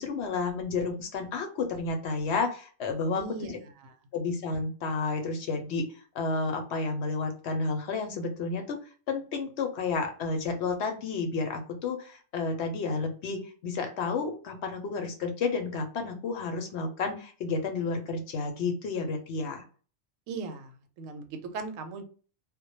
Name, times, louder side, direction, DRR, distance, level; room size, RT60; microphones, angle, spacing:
voice 1, 0.0-3.6 4.1-5.9 6.1-8.8 9.1-19.6, left 4 dB, 65° left, 5 dB, 0.8 m, -31 dB
voice 2, 3.1-4.0 20.3-22.0, right 4 dB, 80° right, 7 dB, 0.9 m, -39 dB
2.1 x 2.1 x 2.8 m, 0.39 s
omnidirectional pair, 1.3 m